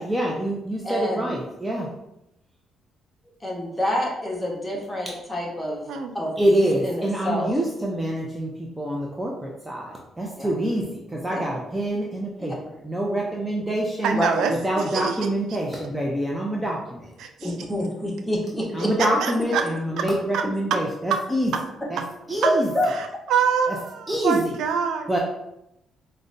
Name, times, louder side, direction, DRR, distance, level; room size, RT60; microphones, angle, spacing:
voice 1, 0.0-1.9 6.4-8.5 8.8-9.9 10.2-12.5 12.8-14.2 14.6-17.1 18.7-21.5 21.9-22.0 22.3-22.7 23.7-23.8 24.1-24.5 25.1-25.2, right 1 dB, 10° right, -2 dB, 0.5 m, -25 dB
voice 2, 0.8-1.3 3.4-5.8 6.1-7.5 10.4-10.5 11.3-11.5 12.4-12.5 14.1-14.5 17.4-18.9 22.4-22.9, equal, 10° left, -3 dB, 1.1 m, -27 dB
voice 3, 14.0-14.5 14.8-15.3 17.2-17.5 19.0-19.7 20.0-20.1 20.3-20.4 20.7-20.8 21.1-21.2 22.4-22.5 22.9-25.1, right 7 dB, 80° right, 5 dB, 0.3 m, -25 dB
5.0 x 2.1 x 2.6 m, 0.85 s
cardioid pair, 90°, 0 cm